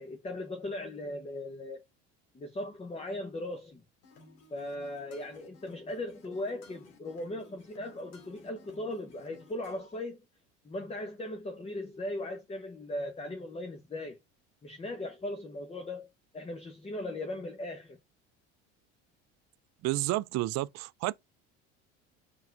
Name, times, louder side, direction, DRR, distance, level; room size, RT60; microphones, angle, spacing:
voice 1, 0.0-1.8 2.3-3.8 4.5-10.2 10.6-14.2 14.6-18.0, left 1 dB, 20° left, 1.0 m, -38 dB
sound 1, 4.0-10.0, left 2 dB, 75° left, 2.2 m, -57 dB
voice 2, 19.8-21.1, right 18 dB, 50° right, 0.5 m, -30 dB
4.8 x 4.7 x 4.7 m
hypercardioid pair, 80°, 35 cm